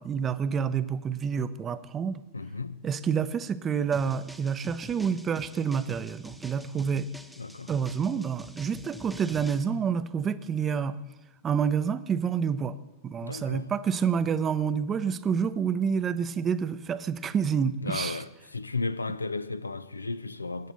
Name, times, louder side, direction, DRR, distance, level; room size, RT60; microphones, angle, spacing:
voice 1, 0.0-2.2 2.8-7.1 7.7-11.0 11.4-12.8 13.0-18.2, right 7 dB, 25° right, 0.6 m, -28 dB
voice 2, 2.3-2.9 7.4-7.7 13.2-13.7 17.8-20.7, left 3 dB, 80° left, 0.5 m, -34 dB
sound 1, 3.9-9.6, equal, 5° right, 0.9 m, -46 dB
18.5 x 9.2 x 4.1 m
figure-of-eight pair, 90°, 0 cm